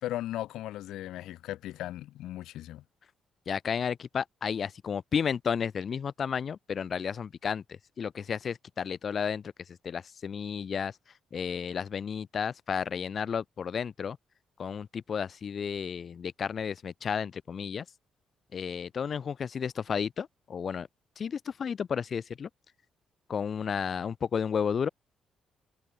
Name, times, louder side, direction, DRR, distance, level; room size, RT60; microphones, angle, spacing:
voice 1, 0.0-2.8, left 14 dB, 85° left, 1.4 m, -37 dB
voice 2, 3.5-11.0 11.3-14.2 14.6-17.8 18.5-20.9 21.2-22.5 23.3-24.9, left 7 dB, 50° left, 0.9 m, -32 dB
cardioid pair, 90°, 0 cm